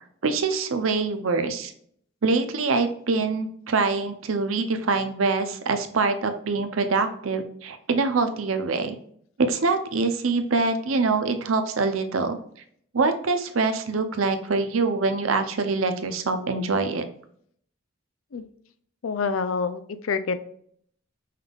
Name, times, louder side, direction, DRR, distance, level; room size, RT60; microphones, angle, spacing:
voice 1, 0.2-1.7 2.2-9.0 9.4-12.4 12.9-17.1, right 3 dB, 65° right, 8 dB, 0.6 m, -24 dB
voice 2, 19.0-20.4, left 5 dB, 70° left, 11 dB, 0.4 m, -27 dB
5.6 x 3.5 x 2.4 m, 0.63 s
head